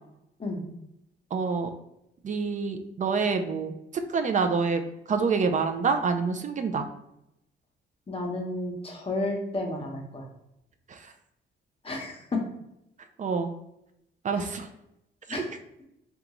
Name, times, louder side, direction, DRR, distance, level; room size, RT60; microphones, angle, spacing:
voice 1, 1.3-1.7 2.2-3.7 4.1-4.8 5.1-6.9 10.9-11.1 13.2-13.5 14.2-14.7, right 5 dB, 40° right, 7 dB, 0.4 m, -27 dB
voice 2, 8.1-10.2 11.8-12.4 14.4-14.5 15.3-15.5, left 2 dB, 30° left, 0 dB, 0.8 m, -32 dB
3.7 x 2.3 x 2.9 m, 0.83 s
cardioid pair, 90°, 20 cm